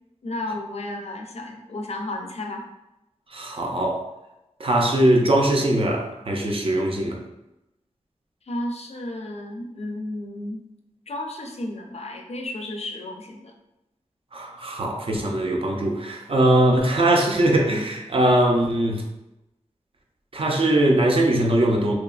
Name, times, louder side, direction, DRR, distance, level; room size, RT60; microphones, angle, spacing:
voice 1, 0.2-2.7 8.5-10.6 11.1-13.5, left 1 dB, 55° left, 3 dB, 0.4 m, -33 dB
voice 2, 3.3-4.0 4.6-7.2 14.3-19.0 20.3-21.9, right 1 dB, 45° right, 1 dB, 0.4 m, -21 dB
2.8 x 2.2 x 2.3 m, 0.93 s
wide cardioid pair, 75°, 13 cm